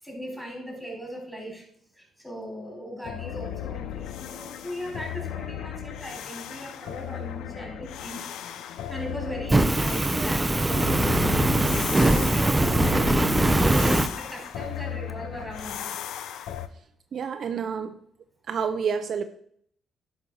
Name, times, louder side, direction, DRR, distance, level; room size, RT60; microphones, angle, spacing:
voice 1, 0.0-1.6 1.9-8.2 8.9-15.9, equal, 5° left, 0 dB, 4.1 m, -38 dB
sound 1, 3.0-16.7, left 10 dB, 85° left, 0.6 m, -35 dB
Fire, 9.5-14.1, right 2 dB, 15° right, 0.7 m, -22 dB
voice 2, 17.1-17.9 18.5-19.2, right 6 dB, 55° right, 8 dB, 0.6 m, -28 dB
10.5 x 5.6 x 4.7 m, 0.64 s
cardioid pair, 90°, 0 cm